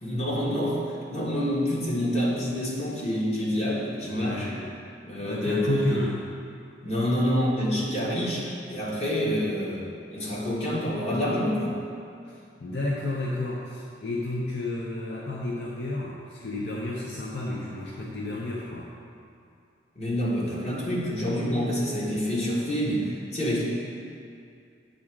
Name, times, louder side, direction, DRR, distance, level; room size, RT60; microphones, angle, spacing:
voice 1, 0.0-4.5 5.0-6.0 6.8-9.8 10.1-11.8 19.9-23.6, equal, 40° left, -6 dB, 1.6 m, -27 dB
voice 2, 4.0-4.7 5.2-6.2 12.2-18.9, left 2 dB, 65° left, -3 dB, 0.7 m, -31 dB
8.5 x 3.6 x 6.2 m, 2.4 s
head